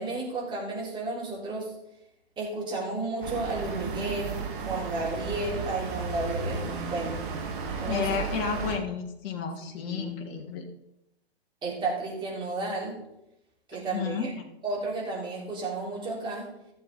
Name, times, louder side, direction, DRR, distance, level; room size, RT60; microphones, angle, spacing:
voice 1, 0.0-1.7 2.4-7.2 7.8-8.2 9.9-10.1 11.6-13.0 13.7-14.3 14.6-16.5, right 2 dB, 15° right, -4 dB, 3.8 m, -32 dB
sound 1, 3.2-8.8, right 4 dB, 50° right, 2.6 m, -34 dB
voice 2, 7.9-10.7 13.7-14.5, left 6 dB, 30° left, 3 dB, 1.7 m, -32 dB
15.5 x 7.1 x 4.1 m, 0.86 s
figure-of-eight pair, 125°, 33 cm